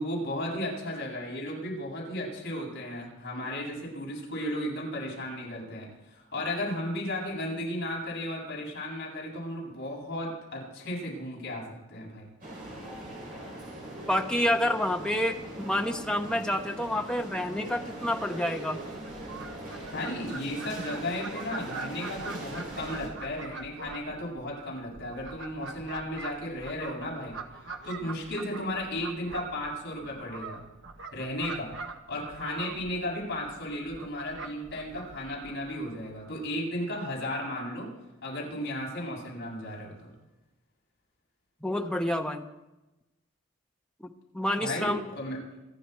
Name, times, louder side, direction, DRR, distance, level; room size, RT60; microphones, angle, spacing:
voice 1, 0.0-11.6 11.9-12.3 19.9-30.6 31.1-31.7 32.1-37.9 38.2-40.1 44.6-45.4, left 1 dB, 50° left, -3 dB, 7.7 m, -35 dB
sound 1, 12.4-23.1, right 1 dB, 40° right, 7.6 m, -41 dB
voice 2, 14.1-18.8 41.6-42.4 44.0-45.0, left 1 dB, 5° left, 3 dB, 1.1 m, -28 dB
Fowl, 19.0-36.3, right 3 dB, 55° right, 1.5 m, -43 dB
27.5 x 11.0 x 4.6 m, 1.0 s
head